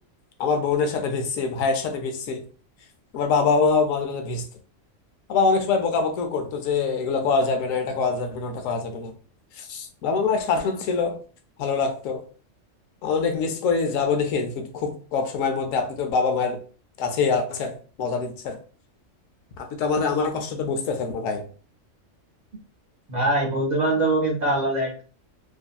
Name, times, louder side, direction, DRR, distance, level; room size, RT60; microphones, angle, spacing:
voice 1, 0.4-2.4 3.1-4.4 5.3-9.1 9.6-11.2 11.6-12.2 13.0-16.6 17.0-18.6 19.6-21.4, left 4 dB, 90° left, 1.0 m, -24 dB
voice 2, 23.1-25.0, right 2 dB, 90° right, 0.4 m, -23 dB
2.6 x 2.5 x 2.2 m
omnidirectional pair, 1.3 m